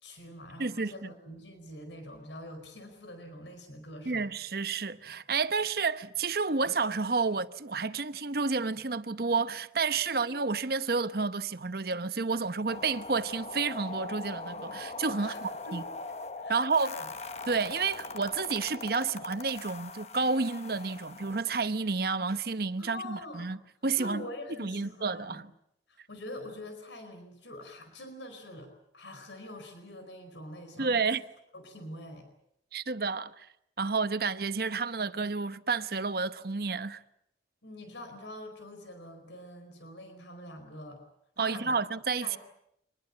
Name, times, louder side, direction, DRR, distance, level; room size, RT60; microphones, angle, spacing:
voice 1, 0.0-4.2 10.0-10.4 15.2-15.4 15.6-15.9 16.4-17.1 22.8-23.5 24.0-25.4 25.9-31.1 31.5-32.3 37.6-41.0 41.4-41.9 42.2-42.4, left 1 dB, 85° left, 4.8 m, -45 dB
voice 2, 0.6-1.1 4.1-15.8 16.5-17.0 17.5-23.6 23.8-24.2 24.6-25.5 30.8-31.2 32.7-33.5 33.8-37.0 41.4-42.3, right 4 dB, 55° right, 0.9 m, -30 dB
sound 1, 12.7-21.4, left 3 dB, 35° left, 1.0 m, -41 dB
25.0 x 20.5 x 8.4 m
head